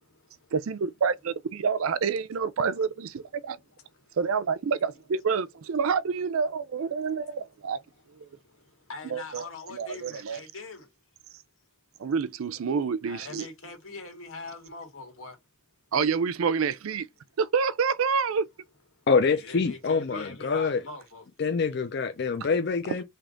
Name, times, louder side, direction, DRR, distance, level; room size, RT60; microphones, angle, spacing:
voice 1, 0.5-3.6 4.2-7.8 8.2-8.3 9.0-9.4 9.7-10.4 12.0-13.5 15.9-17.1 17.4-18.5, right 5 dB, 85° right, 0.4 m, -28 dB
voice 2, 8.9-10.9 13.0-15.4 19.3-21.2 21.7-21.8, left 3 dB, 80° left, 1.9 m, -42 dB
voice 3, 19.1-20.8 21.4-23.0, left 5 dB, 55° left, 0.5 m, -25 dB
3.5 x 2.8 x 3.8 m
head